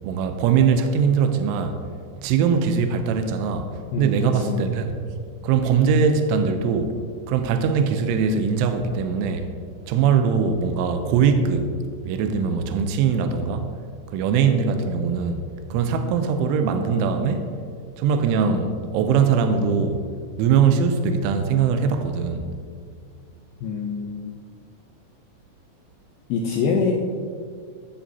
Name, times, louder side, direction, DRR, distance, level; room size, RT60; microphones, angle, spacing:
voice 1, 0.0-1.7 2.2-3.7 4.0-4.9 5.4-6.9 7.3-9.5 9.9-11.7 12.0-13.7 14.1-17.5 18.0-20.0 20.4-22.5, right 6 dB, 85° right, 7 dB, 3.2 m, -21 dB
voice 2, 3.9-4.7 23.6-24.3 26.3-26.9, left 5 dB, 90° left, 0 dB, 2.2 m, -25 dB
14.0 x 10.0 x 2.8 m, 2.1 s
omnidirectional pair, 5.6 m